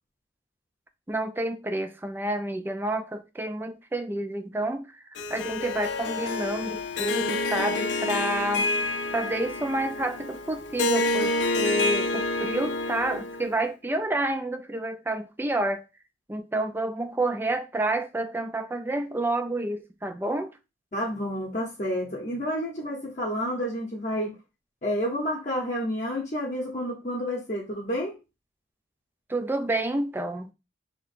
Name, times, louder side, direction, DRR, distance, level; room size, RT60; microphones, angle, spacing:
voice 1, 1.1-8.7 9.1-15.8 16.3-20.5 29.3-30.5, right 1 dB, 10° right, 0.3 m, -29 dB
Harp, 5.2-13.6, left 2 dB, 70° left, 0.4 m, -28 dB
voice 2, 20.9-24.3 24.8-28.1, equal, 40° left, 0.8 m, -30 dB
2.8 x 2.5 x 4.1 m
head